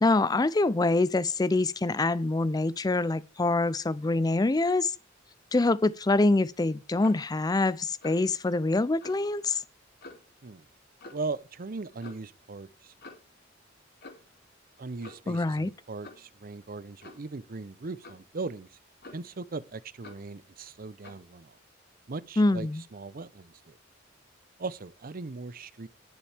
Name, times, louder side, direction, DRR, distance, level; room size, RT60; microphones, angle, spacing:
voice 1, 0.0-5.0 5.5-9.6 15.3-15.7 22.4-22.8, left 2 dB, 20° left, 0.4 m, -25 dB
Clock, 7.0-7.3 8.0-8.3 9.0-9.2 10.0-10.3 11.0-11.3 12.0-12.3 13.0-13.3 14.0-14.4 15.0-15.3 16.0-16.3 17.0-17.3 18.0-18.3 19.0-19.4 20.0-20.3 21.0-21.3, left 2 dB, 55° left, 2.8 m, -48 dB
voice 2, 11.1-12.9 14.8-18.7 19.1-21.5 22.1-23.8 24.6-25.9, right 3 dB, 50° right, 0.6 m, -39 dB
19.0 x 7.2 x 3.4 m
head